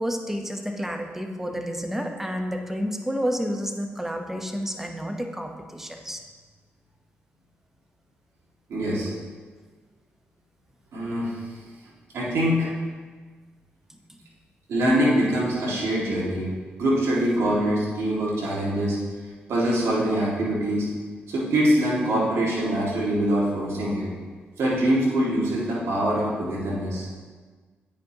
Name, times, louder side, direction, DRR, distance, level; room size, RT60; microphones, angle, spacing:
voice 1, 0.0-6.2 13.9-14.2, equal, 5° right, 4 dB, 0.9 m, -30 dB
voice 2, 8.7-9.1 10.9-11.4 12.1-12.7 14.7-16.5 16.7-19.0 19.5-20.9 21.3-24.1 24.6-27.1, right 1 dB, 70° right, -5 dB, 1.9 m, -24 dB
8.8 x 5.1 x 2.9 m, 1.5 s
supercardioid pair, 50°, 5 cm